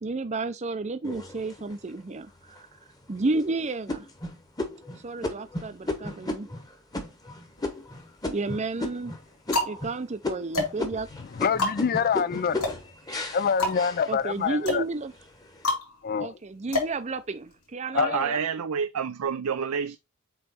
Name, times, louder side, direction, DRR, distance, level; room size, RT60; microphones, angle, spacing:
voice 1, 0.0-2.7 3.1-4.1 5.0-6.5 8.3-9.1 9.7-11.1 14.1-15.1 16.2-18.4, right 3 dB, 30° right, 0.5 m, -31 dB
sound 1, 1.0-1.9 2.5-2.6 3.1-3.4 3.9-9.2 9.5-10.0 10.2-14.6 15.0-15.6, left 2 dB, 15° left, 1.1 m, -34 dB
sound 2, 7.6-8.3 9.0-17.7, left 2 dB, 85° left, 3.3 m, -32 dB
voice 2, 11.4-12.6 13.3-14.8 16.0-16.4 17.9-18.4, left 6 dB, 40° left, 0.4 m, -26 dB
voice 3, 17.9-20.0, right 6 dB, 80° right, 0.5 m, -28 dB
7.8 x 3.2 x 4.3 m
head